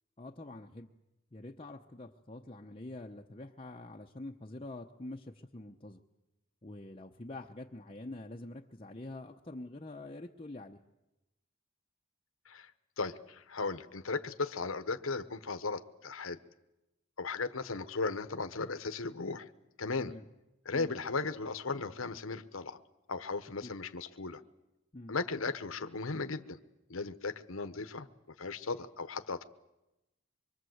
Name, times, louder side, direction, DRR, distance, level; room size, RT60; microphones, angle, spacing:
voice 1, 0.2-0.9 1.3-6.0 6.6-10.8 20.0-20.2 20.7-20.9 23.6-23.7 24.9-25.1, left 2 dB, 25° left, 1 dB, 0.8 m, -46 dB
voice 2, 13.0-16.4 17.2-19.5 19.8-20.1 20.6-22.8 23.1-24.4 25.1-26.6 26.9-28.1 28.4-29.4, left 4 dB, 85° left, 10 dB, 1.1 m, -36 dB
24.5 x 24.0 x 8.0 m, 0.96 s
head